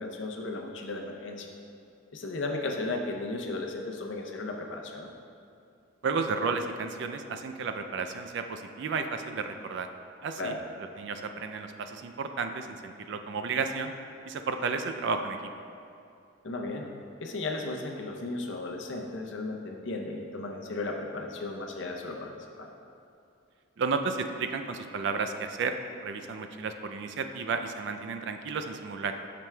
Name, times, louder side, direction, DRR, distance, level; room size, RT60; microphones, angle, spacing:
voice 1, 0.0-1.5 2.1-5.1 10.4-10.6 16.4-16.9 17.2-22.7, left 2 dB, 65° left, 2 dB, 0.6 m, -35 dB
voice 2, 6.0-9.9 10.2-10.5 11.0-13.9 14.3-15.4 23.8-25.8 26.0-29.3, right 4 dB, 60° right, 7 dB, 0.3 m, -32 dB
9.0 x 6.0 x 2.2 m, 2.5 s
head